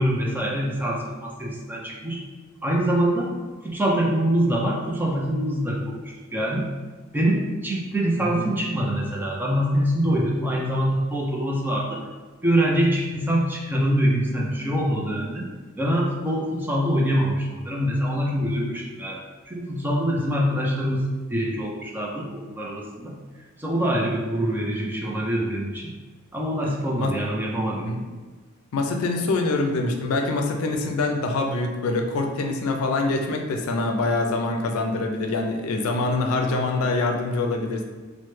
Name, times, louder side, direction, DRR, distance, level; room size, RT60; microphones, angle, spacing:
voice 1, 0.0-2.2 2.6-3.3 3.6-6.7 7.1-12.0 12.4-15.5 15.8-19.2 19.5-23.2 23.6-25.9 26.3-27.9, equal, 10° right, -3 dB, 0.4 m, -24 dB
voice 2, 26.6-27.2 27.8-28.0 28.7-37.8, left 2 dB, 85° left, 3 dB, 0.4 m, -25 dB
3.1 x 2.1 x 3.1 m, 1.4 s
head